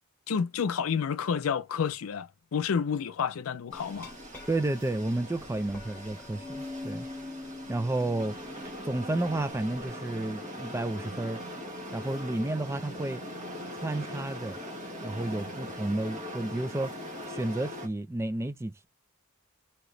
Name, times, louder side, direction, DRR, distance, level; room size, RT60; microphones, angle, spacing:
voice 1, 0.3-4.1, left 6 dB, 85° left, 0.4 m, -30 dB
Glass, 3.7-9.9, left 2 dB, 10° left, 1.2 m, -45 dB
sound 1, 3.7-17.9, equal, 35° right, 1.2 m, -41 dB
voice 2, 4.5-7.1 7.7-8.4 8.8-11.4 11.9-13.2 13.7-14.6 15.0-16.9 17.3-18.9, right 2 dB, 15° right, 0.3 m, -31 dB
3.2 x 2.9 x 3.8 m
head